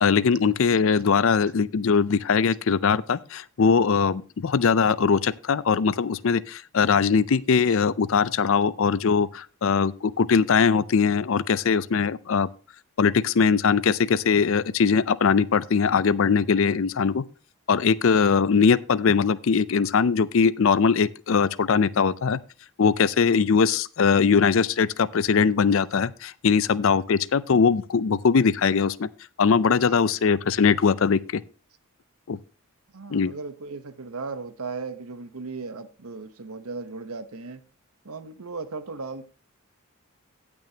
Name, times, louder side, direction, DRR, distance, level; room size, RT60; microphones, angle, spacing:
voice 1, 0.0-12.5 13.0-17.2 17.7-22.4 22.8-29.1 29.4-31.4 32.3-32.4 33.1-33.3, left 5 dB, 65° left, 0.5 m, -21 dB
voice 2, 32.9-37.6 38.0-39.2, right 4 dB, 80° right, 1.0 m, -36 dB
17.0 x 6.2 x 2.8 m
head